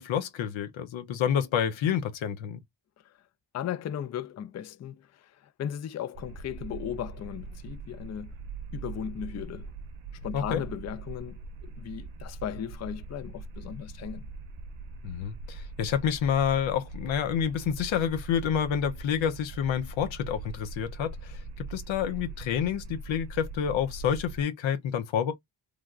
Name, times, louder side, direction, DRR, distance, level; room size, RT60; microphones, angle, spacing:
voice 1, 0.0-2.6 10.3-10.6 15.0-25.3, left 8 dB, 90° left, 0.6 m, -28 dB
voice 2, 3.5-8.3 8.7-9.7 10.2-14.3, left 9 dB, 40° left, 0.4 m, -37 dB
sound 1, 6.1-24.4, right 3 dB, 80° right, 0.6 m, -41 dB
3.3 x 2.3 x 2.3 m
cardioid pair, 55°, 45 cm